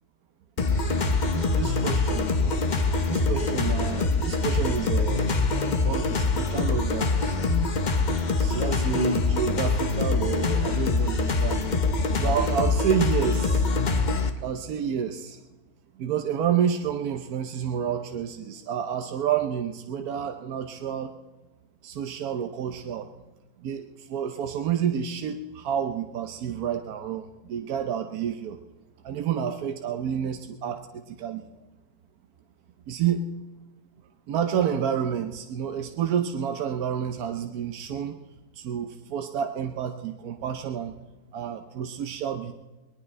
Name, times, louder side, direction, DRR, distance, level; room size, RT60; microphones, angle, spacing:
sound 1, 0.6-14.3, left 3 dB, 45° left, 0.6 m, -24 dB
voice 1, 0.6-2.3 3.1-5.4 5.8-7.4 8.1-11.6 12.2-13.7 14.4-15.4 16.0-21.1 21.8-23.1 23.6-28.6 29.0-31.5 32.9-33.2 34.3-38.2 38.5-40.9 41.3-42.5, right 8 dB, 65° right, 5 dB, 1.1 m, -29 dB
20.5 x 19.5 x 3.3 m, 1.2 s
omnidirectional pair, 2.0 m